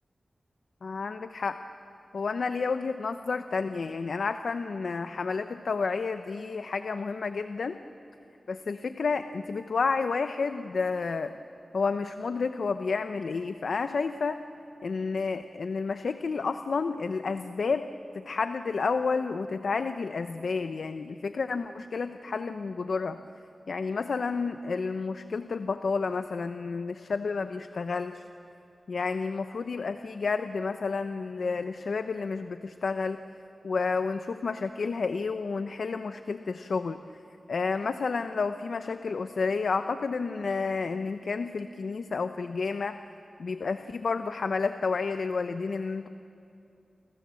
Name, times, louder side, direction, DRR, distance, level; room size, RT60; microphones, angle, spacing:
voice 1, 0.8-1.6 2.1-7.8 8.5-11.3 11.7-14.4 14.8-17.9 18.1-23.2 23.7-28.2 28.9-33.2 33.6-37.0 37.5-43.0 43.4-46.1, left 4 dB, 75° left, 9 dB, 0.8 m, -30 dB
29.5 x 24.0 x 7.7 m, 2.7 s
cardioid pair, 50°, 0 cm